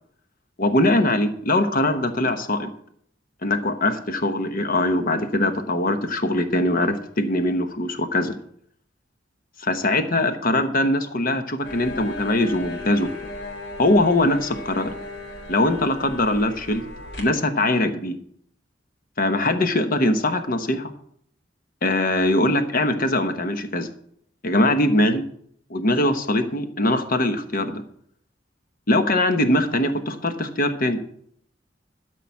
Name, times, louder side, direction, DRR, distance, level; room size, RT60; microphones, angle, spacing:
voice 1, 0.6-2.7 3.4-8.3 9.6-13.1 13.8-14.9 15.5-16.8 17.2-18.2 19.2-20.9 21.8-23.9 24.4-25.2 25.7-27.8 28.9-31.0, left 1 dB, 50° left, 8 dB, 1.1 m, -22 dB
sound 1, 11.6-17.2, left 2 dB, 70° left, 2.8 m, -36 dB
13.0 x 5.1 x 7.1 m, 0.66 s
head